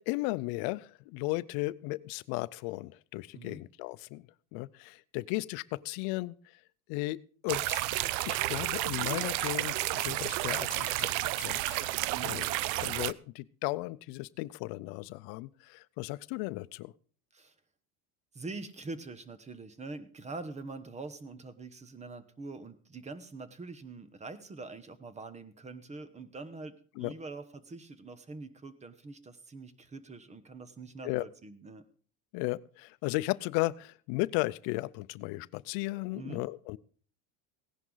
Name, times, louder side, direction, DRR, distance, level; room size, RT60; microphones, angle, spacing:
voice 1, 0.0-4.2 4.5-6.4 6.9-7.9 8.3-11.1 11.4-11.9 12.2-12.5 12.7-16.9 27.0-27.1 31.0-31.3 32.3-36.8, left 21 dB, 75° left, 17 dB, 0.6 m, -35 dB
sound 1, 7.5-13.1, right 17 dB, 80° right, 0.6 m, -31 dB
voice 2, 18.3-31.8 36.1-36.4, right 3 dB, 20° right, 13 dB, 1.0 m, -44 dB
16.5 x 11.0 x 3.9 m, 0.42 s
cardioid pair, 140°, 36 cm